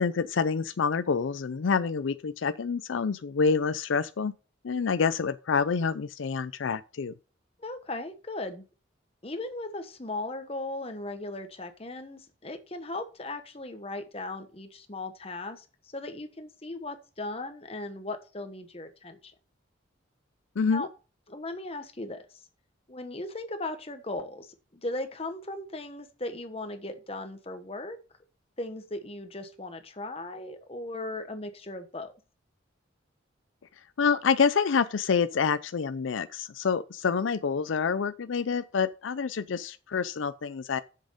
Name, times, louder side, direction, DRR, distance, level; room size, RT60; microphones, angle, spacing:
voice 1, 0.0-4.3 4.6-7.1 20.6-20.9 34.0-40.8, left 5 dB, 80° left, 0.5 m, -27 dB
voice 2, 7.6-8.6 9.2-19.3 20.7-20.9 21.3-22.5 22.9-28.0 28.6-32.1, left 2 dB, 30° left, 1.1 m, -37 dB
7.6 x 7.1 x 5.2 m
head